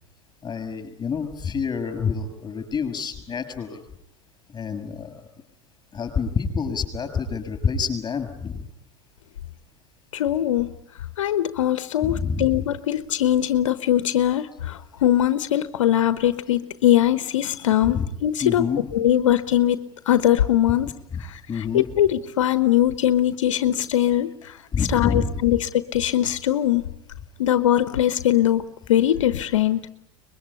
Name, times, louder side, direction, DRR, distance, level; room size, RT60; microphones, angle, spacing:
voice 1, 0.4-3.8 4.5-5.2 5.9-8.7 12.0-12.6 17.8-18.1 18.4-18.8 21.1-21.2 21.5-21.8 24.7-25.6, left 6 dB, 25° left, 6.8 m, -27 dB
voice 2, 10.1-10.7 11.2-18.6 18.9-20.9 21.2-24.6 24.9-26.8 27.4-29.9, left 12 dB, 80° left, 1.1 m, -21 dB
24.0 x 21.5 x 9.9 m
hypercardioid pair, 100°, 16 cm